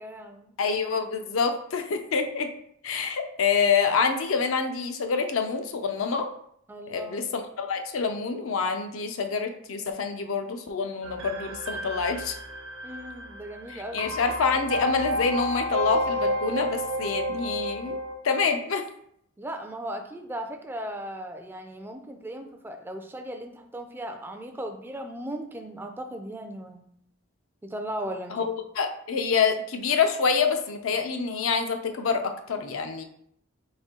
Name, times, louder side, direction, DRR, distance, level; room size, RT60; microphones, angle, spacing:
voice 1, 0.0-0.6 6.7-7.3 12.8-14.1 19.4-26.9 27.6-28.5, right 1 dB, 10° right, 6 dB, 0.3 m, -37 dB
voice 2, 0.6-2.5 2.8-6.3 6.9-12.3 13.7-18.0 18.2-18.8 28.3-33.0, left 5 dB, 80° left, 6 dB, 0.5 m, -27 dB
sound 1, 11.0-18.1, equal, 75° right, 0.6 m, -31 dB
4.2 x 2.6 x 3.6 m, 0.69 s
head